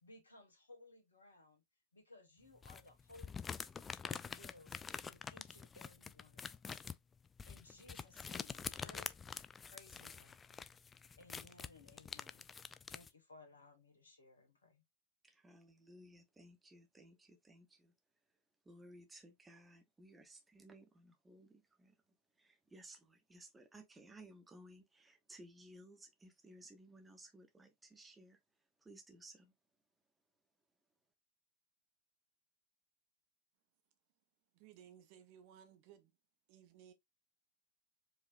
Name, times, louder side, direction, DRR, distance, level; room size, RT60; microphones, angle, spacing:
voice 1, 0.0-1.6 1.9-3.7 4.0-4.8 5.0-6.8 7.5-9.1 9.7-10.7 11.2-12.5 12.9-14.8, left 2 dB, 70° left, 1.3 m, -61 dB
sound 1, 2.6-13.1, left 6 dB, 20° left, 0.3 m, -47 dB
voice 2, 15.2-17.9 18.6-21.9 22.4-28.4 28.8-29.5, right 1 dB, 10° right, 1.0 m, -59 dB
voice 3, 34.5-36.2 36.5-36.9, right 9 dB, 45° right, 0.8 m, -60 dB
4.8 x 3.0 x 2.6 m
figure-of-eight pair, 90°, 0 cm